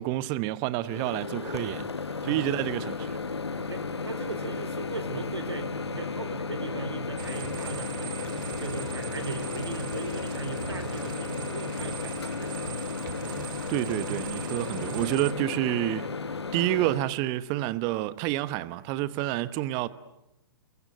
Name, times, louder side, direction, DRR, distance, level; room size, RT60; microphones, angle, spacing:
voice 1, 0.0-1.9 2.2-3.2 13.7-16.1 16.5-19.9, right 15 dB, 30° right, 1.1 m, -29 dB
Microwave oven, 0.8-17.1, left 4 dB, 80° left, 1.4 m, -34 dB
voice 2, 3.7-12.6, right 3 dB, 85° right, 4.2 m, -38 dB
sound 1, 7.2-15.3, right 8 dB, 50° right, 2.4 m, -40 dB
29.5 x 21.5 x 9.3 m
figure-of-eight pair, 120°, 14 cm